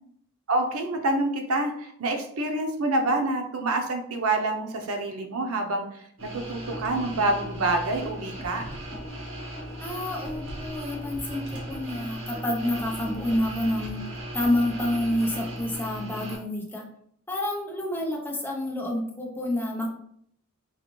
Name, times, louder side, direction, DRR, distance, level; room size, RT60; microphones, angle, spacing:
voice 1, 0.5-6.0 6.3-8.7, right 2 dB, 90° right, 4 dB, 0.6 m, -27 dB
sound 1, 6.2-16.4, equal, 65° right, 1.4 m, -37 dB
voice 2, 9.8-14.0 14.3-16.8 17.3-19.9, left 1 dB, 10° left, 0 dB, 0.6 m, -28 dB
4.7 x 2.4 x 3.0 m, 0.68 s
head